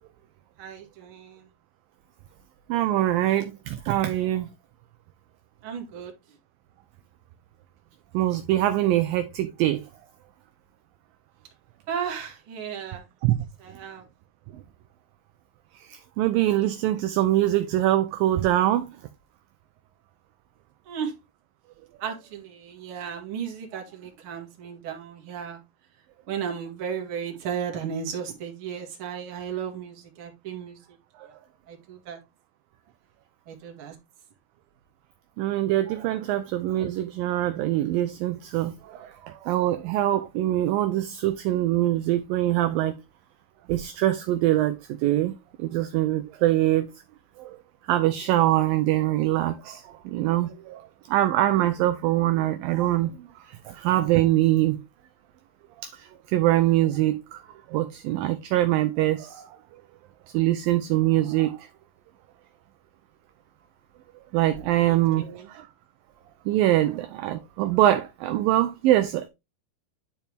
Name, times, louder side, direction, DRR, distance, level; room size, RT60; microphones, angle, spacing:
voice 1, 0.6-1.5 5.6-6.1 11.9-13.0 13.6-14.0 20.9-21.1 22.0-25.6 26.3-30.8 31.7-32.2 33.5-33.9 36.3-36.4 64.8-65.5, right 7 dB, 40° right, 2.1 m, -35 dB
voice 2, 2.7-4.5 8.1-9.9 13.2-13.4 15.9-18.9 31.2-31.3 35.4-42.9 43.7-46.9 47.4-47.6 47.9-50.8 51.1-54.8 55.8-57.4 57.7-59.5 60.3-61.7 64.3-65.7 66.5-69.3, right 14 dB, 80° right, 2.1 m, -24 dB
10.5 x 4.4 x 3.4 m
omnidirectional pair, 4.6 m